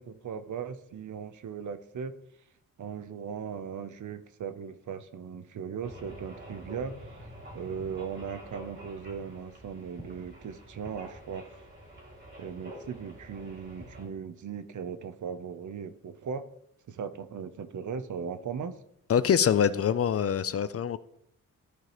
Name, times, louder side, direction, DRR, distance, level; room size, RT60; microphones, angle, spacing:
voice 1, 0.0-2.1 2.8-7.2 7.5-11.6 12.4-16.5 16.9-18.8, right 6 dB, 65° right, 0.7 m, -38 dB
sound 1, 5.8-14.1, right 1 dB, 35° right, 3.3 m, -47 dB
voice 2, 19.1-21.0, left 8 dB, 45° left, 0.4 m, -24 dB
13.0 x 4.7 x 3.0 m
cardioid pair, 80°, 33 cm